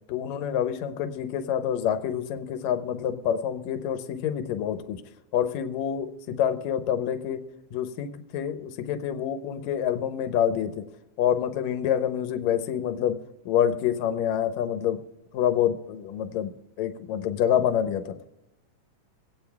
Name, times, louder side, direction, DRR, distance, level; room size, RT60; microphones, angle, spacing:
voice 1, 0.1-5.0 5.3-7.4 7.7-10.8 11.2-13.2 13.5-15.0 15.3-16.5 16.8-18.2, left 9 dB, 75° left, 9 dB, 1.9 m, -27 dB
26.0 x 8.8 x 2.3 m, 0.95 s
omnidirectional pair, 3.4 m